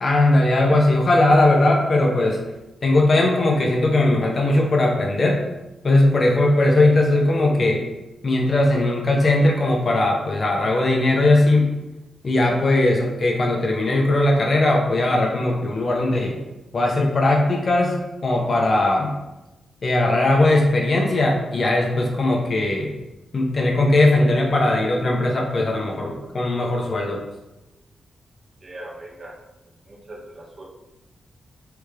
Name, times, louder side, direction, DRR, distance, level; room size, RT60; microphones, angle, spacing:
voice 1, 0.0-2.4 2.8-5.4 5.8-7.8 8.2-11.7 12.2-16.4 16.7-18.0 18.2-19.1 19.8-22.9 23.3-27.2, left 2 dB, 35° left, 0 dB, 0.9 m, -19 dB
voice 2, 28.6-29.3 29.8-30.6, right 1 dB, 35° right, -3 dB, 1.3 m, -39 dB
8.3 x 3.5 x 3.4 m, 1.0 s
wide cardioid pair, 170°, 0 cm